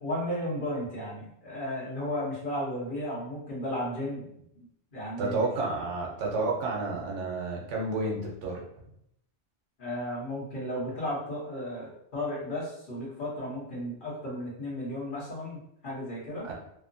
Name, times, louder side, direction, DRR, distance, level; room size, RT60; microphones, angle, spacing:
voice 1, 0.0-4.3 4.6-4.7 4.9-5.4 9.8-16.5, left 1 dB, 50° left, -6 dB, 1.1 m, -34 dB
voice 2, 5.2-8.6 16.4-16.5, right 3 dB, 85° right, -1 dB, 1.1 m, -30 dB
2.9 x 2.1 x 2.5 m, 0.74 s
omnidirectional pair, 1.2 m